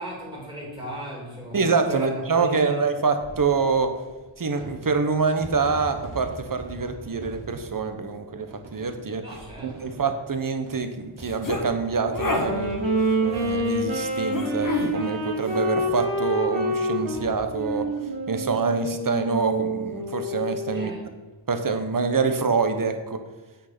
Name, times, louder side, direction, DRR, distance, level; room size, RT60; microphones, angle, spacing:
voice 1, 0.0-1.6 1.9-2.7 9.2-10.0 20.7-21.0, equal, 10° right, -5 dB, 2.8 m, -36 dB
voice 2, 1.5-3.9 4.4-9.2 9.6-12.7 13.2-17.9 18.3-20.9 21.5-23.2, right 4 dB, 45° right, 7 dB, 1.0 m, -25 dB
sound 1, 3.2-19.1 19.4-19.5 19.7-19.8 21.1-21.3, right 1 dB, 65° right, 2.4 m, -44 dB
sound 2, 11.2-11.6 12.1-12.5 14.3-14.9, left 2 dB, 40° left, 1.4 m, -27 dB
Wind instrument woodwind instrument, 12.2-20.9, right 1 dB, 80° right, 3.0 m, -27 dB
8.1 x 6.4 x 6.0 m, 1.2 s
wide cardioid pair, 120°, 48 cm